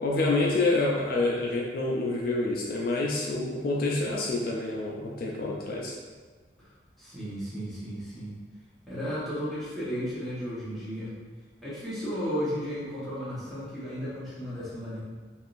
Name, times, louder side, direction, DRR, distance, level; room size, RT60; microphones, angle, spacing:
voice 1, 0.0-5.9, left 2 dB, 55° left, -2 dB, 0.4 m, -27 dB
voice 2, 7.0-8.3 8.9-11.1 11.6-15.0, equal, ahead, -11 dB, 1.0 m, -34 dB
3.5 x 2.4 x 2.5 m, 1.4 s
head